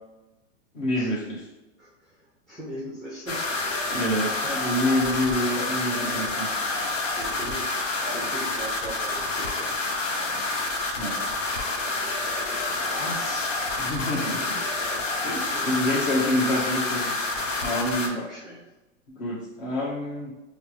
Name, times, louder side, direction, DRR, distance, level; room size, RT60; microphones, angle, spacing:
voice 1, 0.7-1.5 3.9-6.5 11.0-11.2 13.8-14.6 15.2-17.1 17.6-18.2 19.2-20.3, left 1 dB, 45° left, -3 dB, 1.4 m, -27 dB
voice 2, 1.8-3.9 4.4-4.7 5.0-5.3 7.2-9.8 12.5-13.5 15.5-16.0 18.2-18.7, right 1 dB, ahead, -6 dB, 0.5 m, -39 dB
sound 1, 3.3-18.1, left 2 dB, 75° left, 0.9 m, -28 dB
4.8 x 2.1 x 3.1 m, 1.0 s
hypercardioid pair, 125°, 38 cm